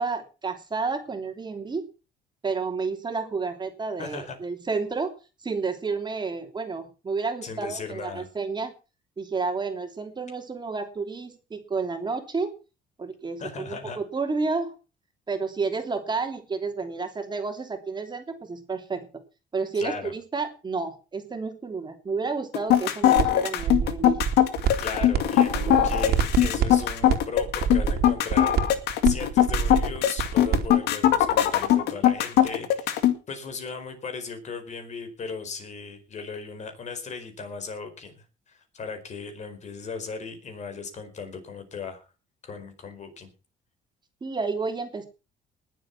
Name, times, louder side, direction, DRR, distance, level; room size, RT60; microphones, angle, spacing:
voice 1, 0.0-1.9 2.4-8.7 9.2-12.5 13.0-14.7 15.3-19.1 19.5-24.2 25.3-26.1 44.2-45.1, right 4 dB, 25° right, 5 dB, 3.0 m, -31 dB
voice 2, 4.0-4.4 7.4-8.3 13.4-14.0 19.7-20.1 24.8-28.6 29.0-42.1 42.4-43.3, left 4 dB, 45° left, 7 dB, 4.8 m, -37 dB
sound 1, 22.5-33.1, left 11 dB, 80° left, 2.2 m, -20 dB
sound 2, 23.2-23.3 23.6-25.2 25.5-30.7, right 8 dB, 70° right, 3.1 m, -26 dB
20.0 x 7.7 x 5.9 m, 0.33 s
cardioid pair, 110°, 17 cm